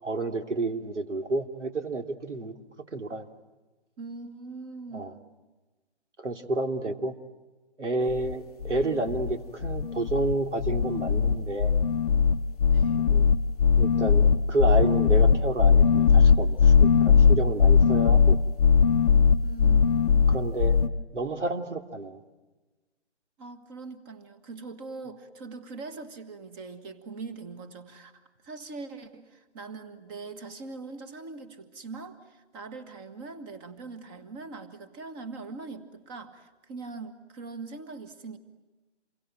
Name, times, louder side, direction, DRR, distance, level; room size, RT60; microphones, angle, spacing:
voice 1, 0.0-2.5 2.9-3.2 4.9-5.1 6.2-7.1 7.8-11.7 13.0-13.3 13.8-18.4 20.3-20.8 21.1-22.2, right 2 dB, 90° right, 7 dB, 3.1 m, -30 dB
voice 2, 4.0-5.4 12.7-13.1 19.4-20.4 23.4-28.1 28.4-38.4, right 4 dB, 20° right, 10 dB, 1.7 m, -42 dB
sound 1, 8.1-8.3 8.6-9.3 9.6-10.3 10.6-20.9, left 6 dB, 35° left, 0.9 m, -20 dB
28.0 x 23.5 x 8.9 m, 1.2 s
hypercardioid pair, 155°, 35 cm